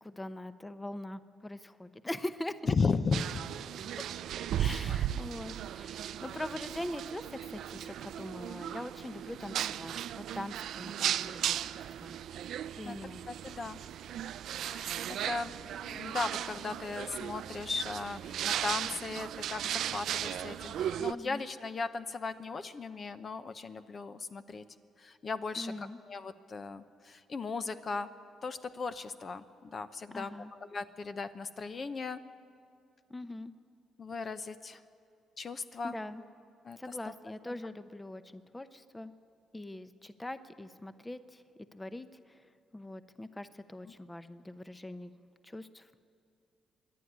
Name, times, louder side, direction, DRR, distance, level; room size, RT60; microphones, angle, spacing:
voice 1, 0.0-2.7 4.0-4.1 4.6-11.6 12.0-12.2 12.7-13.2 21.1-21.4 25.6-26.0 30.1-30.5 33.1-33.5 35.8-36.3 36.8-39.1 39.5-41.4 41.7-42.4 42.7-45.1 45.4-45.9, left 1 dB, 15° left, 11 dB, 0.8 m, -42 dB
voice 2, 2.7-3.2 4.6-5.0 12.8-13.0 13.3-13.8 14.7-15.5 15.8-24.6 25.0-25.7 26.0-28.1 28.4-32.2 34.0-34.8 35.4-36.0 36.6-37.1 43.9-44.0, left 4 dB, 40° left, 11 dB, 0.8 m, -36 dB
sound 1, 3.1-21.1, right 10 dB, 75° right, 0.4 m, -36 dB
25.5 x 11.0 x 9.4 m, 2.4 s
cardioid pair, 90°, 0 cm